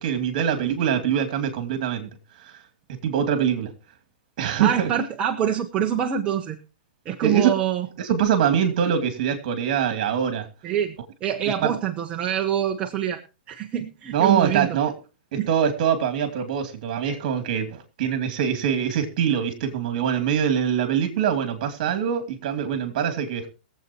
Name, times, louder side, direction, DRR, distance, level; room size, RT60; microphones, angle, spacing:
voice 1, 0.0-2.1 3.0-3.7 4.4-4.9 7.2-7.5 8.0-10.5 11.6-11.7 14.1-14.9 15.3-23.5, right 8 dB, 50° right, 7 dB, 2.7 m, -23 dB
voice 2, 4.6-6.6 7.0-7.9 10.6-11.0 11.2-13.2 13.5-14.8 15.4-15.5, right 9 dB, 25° right, 3 dB, 0.9 m, -25 dB
22.5 x 8.0 x 3.0 m, 0.33 s
hypercardioid pair, 150°, 5 cm